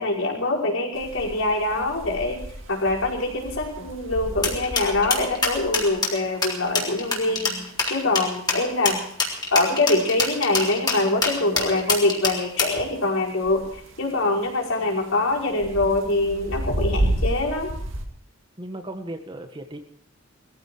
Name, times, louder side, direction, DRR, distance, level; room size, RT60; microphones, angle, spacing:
voice 1, 0.0-2.4 2.7-9.1 9.5-13.7 14.0-17.7, left 2 dB, 75° left, -2 dB, 5.4 m, -24 dB
sound 1, 0.9-18.1, right 1 dB, 70° right, 2.5 m, -33 dB
sound 2, 4.4-12.8, left 3 dB, 20° left, 3.8 m, -25 dB
voice 2, 18.6-19.8, right 1 dB, 25° right, 6 dB, 1.6 m, -36 dB
21.0 x 15.0 x 4.7 m, 0.64 s
head